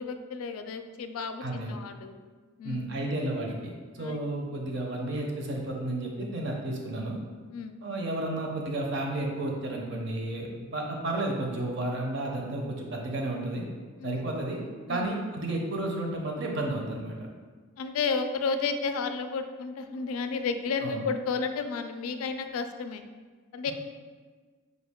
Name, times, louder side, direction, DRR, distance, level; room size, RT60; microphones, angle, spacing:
voice 1, 0.0-2.2 2.6-2.9 4.0-4.2 7.5-7.8 14.0-14.2 14.9-15.1 17.8-23.0 23.5-23.7, left 5 dB, 75° left, 8 dB, 0.3 m, -32 dB
voice 2, 1.4-1.7 2.6-7.2 7.8-13.7 14.0-14.6 14.9-17.3 20.8-21.0, right 1 dB, 55° right, 0 dB, 0.6 m, -32 dB
4.9 x 2.3 x 3.5 m, 1.5 s
head